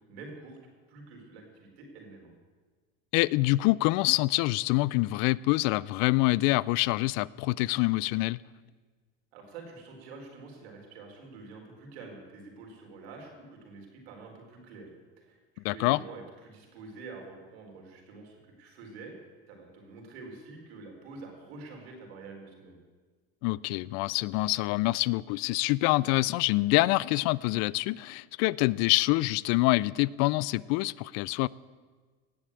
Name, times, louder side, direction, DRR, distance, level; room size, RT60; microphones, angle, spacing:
voice 1, 0.1-0.6 0.9-2.3 9.3-14.9 15.2-19.1 19.5-22.8, right 3 dB, 85° right, 4.2 m, -47 dB
voice 2, 3.1-8.4 15.6-16.0 23.4-31.5, left 20 dB, 60° left, 0.5 m, -26 dB
17.5 x 7.6 x 8.6 m
supercardioid pair, 100°, 31 cm